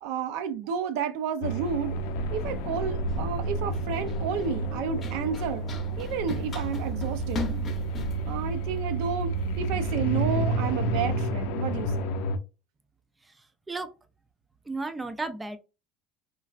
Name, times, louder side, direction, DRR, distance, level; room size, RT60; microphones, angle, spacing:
voice 1, 0.0-2.0 2.3-5.6 6.0-7.5 8.2-12.1, right 7 dB, 75° right, 0.5 m, -31 dB
sound 1, 1.4-12.4, right 2 dB, 75° left, 0.4 m, -30 dB
Run, 1.7-9.6, left 3 dB, 25° left, 0.6 m, -39 dB
sound 2, 4.9-10.1, right 2 dB, 50° right, 1.0 m, -42 dB
voice 2, 13.2-13.9 14.7-15.6, right 3 dB, 10° right, 0.3 m, -34 dB
3.1 x 2.4 x 2.4 m
cardioid pair, 160°, 0 cm